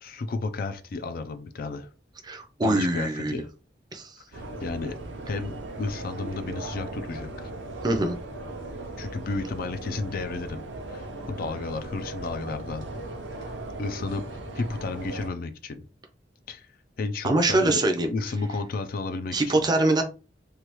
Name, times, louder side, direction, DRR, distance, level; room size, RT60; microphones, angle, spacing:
voice 1, 0.0-1.9 2.6-3.5 4.3-5.0 5.3-7.5 9.0-12.9 13.8-14.3 14.6-15.8 16.5-16.7 17.0-17.8 18.1-19.7, left 3 dB, 55° left, 10 dB, 0.4 m, -32 dB
voice 2, 2.3-3.4 3.9-4.1 7.8-8.2 17.2-18.1 19.3-20.0, right 2 dB, 25° right, 5 dB, 0.5 m, -23 dB
sound 1, 4.3-15.3, right 2 dB, 80° right, 0.6 m, -38 dB
3.2 x 2.2 x 2.9 m, 0.33 s
head